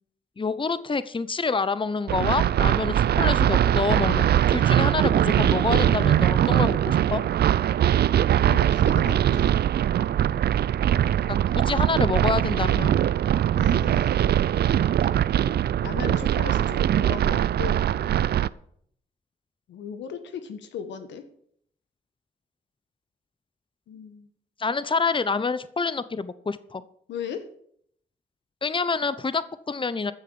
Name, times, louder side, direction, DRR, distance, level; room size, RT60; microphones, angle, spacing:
voice 1, 0.4-7.2 11.3-12.9 24.6-26.8 28.6-30.1, left 4 dB, 30° left, 15 dB, 0.9 m, -27 dB
sound 1, 2.1-18.5, right 11 dB, 65° right, 0.5 m, -21 dB
voice 2, 8.4-9.6 13.5-14.1 15.8-17.9 19.7-21.2 23.9-24.3 27.1-27.5, left 7 dB, 85° left, 9 dB, 1.4 m, -37 dB
14.5 x 6.7 x 7.1 m, 0.67 s
supercardioid pair, 45°, 18 cm